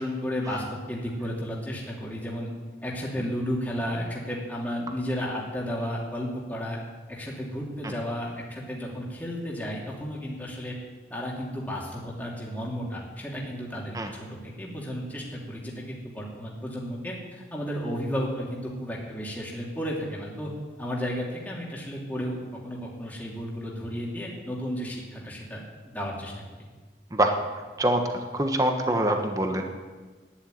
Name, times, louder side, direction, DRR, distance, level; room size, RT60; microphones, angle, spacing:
voice 1, 0.0-2.5 2.8-6.8 7.1-10.7 11.1-20.5 20.8-22.4 22.6-26.4, equal, 10° left, -4 dB, 2.7 m, -33 dB
voice 2, 27.8-29.6, right 1 dB, 20° right, 4 dB, 1.2 m, -24 dB
11.5 x 10.5 x 9.4 m, 1.4 s
head